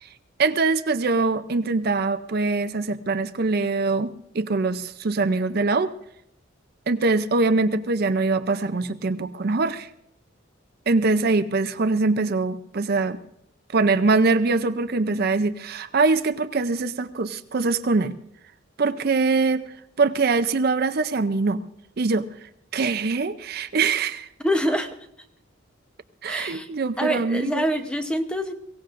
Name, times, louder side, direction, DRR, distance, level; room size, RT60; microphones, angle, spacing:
voice 1, 0.4-5.9 6.9-9.9 10.9-13.2 13.7-18.2 18.8-19.7 20.0-21.6 22.0-22.3 22.7-24.3 26.2-27.7, right 3 dB, 50° right, 10 dB, 0.5 m, -23 dB
voice 2, 24.4-24.9 26.3-26.7 27.0-28.5, equal, 5° left, 6 dB, 0.8 m, -25 dB
23.0 x 16.5 x 2.5 m, 0.73 s
head